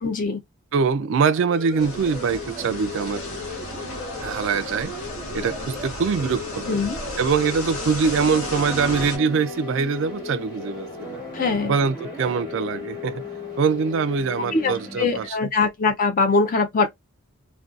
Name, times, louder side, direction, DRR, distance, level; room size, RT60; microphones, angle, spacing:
voice 1, 0.0-0.4 6.7-7.0 11.3-11.7 14.5-16.9, left 4 dB, 40° left, 0.4 m, -22 dB
voice 2, 0.7-3.2 4.2-4.9 5.3-6.8 7.2-11.2 11.6-13.2 13.6-15.3, right 5 dB, 55° right, 0.3 m, -23 dB
sound 1, 1.0-14.7, left 4 dB, 5° right, 0.7 m, -37 dB
Smooth Strings, 1.7-15.3, left 1 dB, 20° left, 1.1 m, -42 dB
sound 2, 1.8-9.2, left 1 dB, 90° left, 1.1 m, -34 dB
2.5 x 2.2 x 2.3 m
head